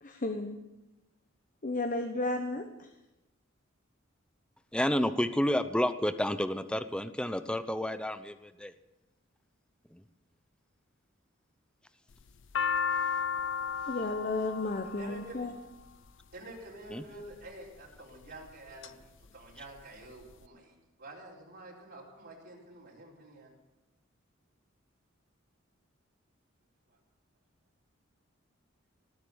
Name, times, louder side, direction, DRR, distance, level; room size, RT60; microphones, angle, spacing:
voice 1, 0.0-0.6 1.6-2.9 13.9-15.5, left 2 dB, 40° left, 6 dB, 1.1 m, -33 dB
voice 2, 4.7-8.7 9.9-10.0 16.9-17.0, left 1 dB, 5° left, 11 dB, 0.6 m, -30 dB
sound 1, 12.1-16.3 17.2-17.6 18.2-18.9 19.2-19.3 19.5-20.3, left 6 dB, 65° left, 0.6 m, -34 dB
voice 3, 14.8-15.5 16.3-23.5 26.9-27.0, right 2 dB, 55° right, -4 dB, 4.3 m, -49 dB
19.0 x 8.3 x 8.4 m, 0.98 s
head